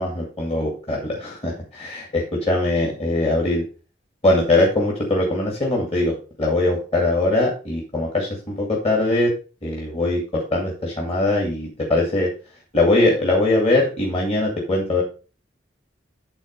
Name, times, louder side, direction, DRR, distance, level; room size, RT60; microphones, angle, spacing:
voice 1, 0.0-3.6 4.2-6.1 6.4-9.3 9.6-12.3 12.7-15.0, left 2 dB, 30° left, -1 dB, 2.3 m, -21 dB
10.5 x 4.2 x 5.3 m, 0.35 s
head